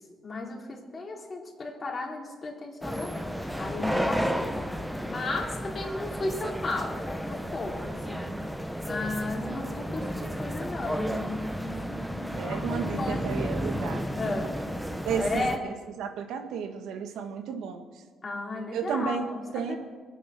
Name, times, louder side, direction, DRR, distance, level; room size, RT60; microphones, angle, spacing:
voice 1, 0.2-4.6 5.1-8.3 8.8-14.6 15.2-15.6 18.2-19.8, left 2 dB, 35° left, -1 dB, 3.7 m, -35 dB
sound 1, 2.8-15.6, equal, ahead, 1.1 m, -32 dB
voice 2, 12.4-14.0 15.0-15.5 16.0-17.8 18.7-19.3 19.5-19.7, right 6 dB, 85° right, 6 dB, 1.6 m, -32 dB
22.0 x 9.2 x 6.0 m, 1.5 s
cardioid pair, 90°, 0 cm